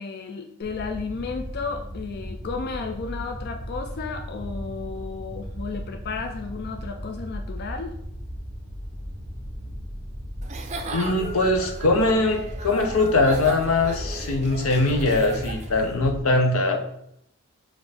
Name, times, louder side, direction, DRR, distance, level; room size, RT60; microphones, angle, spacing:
voice 1, 0.0-8.0, left 4 dB, 50° left, 5 dB, 0.3 m, -33 dB
sound 1, 0.6-16.2, equal, 35° left, 1.1 m, -36 dB
Giggle / Chuckle chortle, 10.4-15.9, right 3 dB, 35° right, 0.4 m, -37 dB
voice 2, 10.9-16.8, left 2 dB, 90° left, 4 dB, 0.7 m, -22 dB
6.1 x 2.5 x 3.4 m, 0.74 s
head